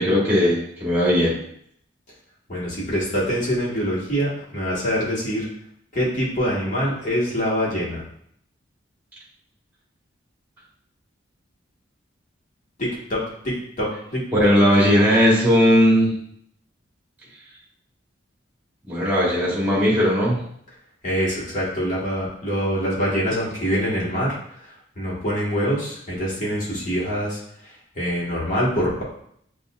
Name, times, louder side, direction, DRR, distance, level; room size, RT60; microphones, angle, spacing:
voice 1, 0.0-1.4 14.3-16.1 18.9-20.4, equal, 10° right, -6 dB, 1.3 m, -18 dB
voice 2, 2.5-5.5 5.9-8.0 12.8-14.2 21.0-24.4 25.0-27.4 28.0-29.0, equal, 40° left, -6 dB, 1.4 m, -24 dB
6.7 x 2.5 x 2.4 m, 0.68 s
head